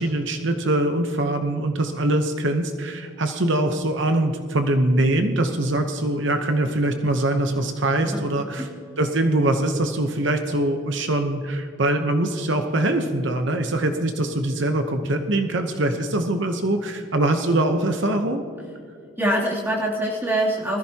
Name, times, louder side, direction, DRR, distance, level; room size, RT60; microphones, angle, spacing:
voice 1, 0.0-8.7 9.0-18.4, right 1 dB, 65° right, 6 dB, 0.9 m, -23 dB
voice 2, 19.2-20.8, right 1 dB, 10° right, -5 dB, 2.9 m, -24 dB
21.0 x 14.0 x 2.9 m, 2.3 s
head